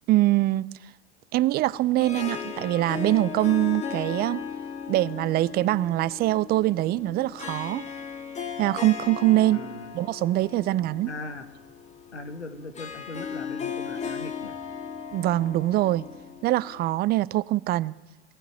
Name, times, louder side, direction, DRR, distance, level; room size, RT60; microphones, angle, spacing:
voice 1, 0.1-0.7 1.3-4.4 4.9-7.8 8.6-9.7 9.9-11.1 15.1-16.0 16.4-17.9, right 16 dB, 30° right, 0.6 m, -23 dB
Harp, 1.7-17.0, left 6 dB, 20° left, 2.1 m, -37 dB
voice 2, 9.5-10.0 11.1-11.5 12.1-14.6, left 3 dB, 90° left, 2.0 m, -39 dB
21.0 x 16.0 x 9.8 m
hypercardioid pair, 100°, 34 cm